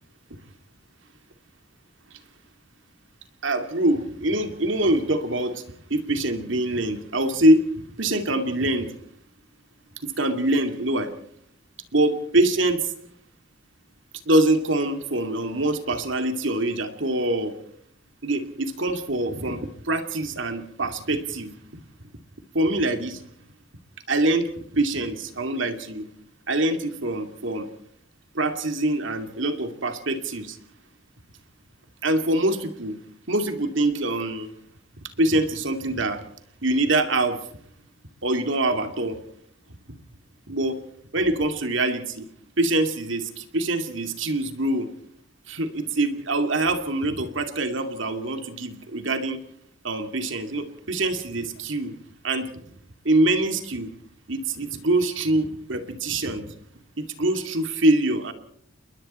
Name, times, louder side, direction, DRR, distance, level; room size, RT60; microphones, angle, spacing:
voice 1, 3.4-5.6 5.9-8.9 10.0-11.1 11.9-12.9 14.3-17.5 18.2-21.5 22.5-23.2 24.1-26.1 26.5-27.7 28.3-30.6 32.0-33.0 33.3-34.5 35.0-36.2 36.6-37.4 38.2-39.2 40.5-40.8 41.1-42.3 42.6-44.9 45.5-49.4 49.8-51.9 52.2-52.6 53.0-53.9 54.3-56.5 57.0-58.3, right 1 dB, 70° right, 7 dB, 2.5 m, -24 dB
29.5 x 21.5 x 4.4 m, 0.63 s
head